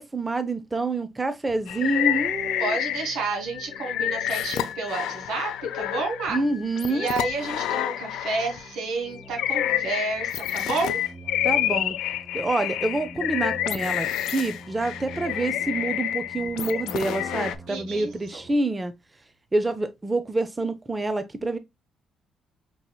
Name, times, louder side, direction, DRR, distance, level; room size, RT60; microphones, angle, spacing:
voice 1, 0.0-2.8 6.3-7.1 11.4-12.0 12.3-18.9 19.5-21.6, right 2 dB, 20° right, 0.5 m, -27 dB
sound 1, 1.5-18.5, right 1 dB, 10° left, 0.8 m, -46 dB
sound 2, 1.7-3.2 3.5-8.7 9.2-17.6, left 12 dB, 85° left, 0.4 m, -28 dB
voice 2, 2.6-6.4 6.9-11.0 17.7-18.4, right 3 dB, 85° right, 1.6 m, -30 dB
5.4 x 2.9 x 2.2 m
cardioid pair, 90°, 0 cm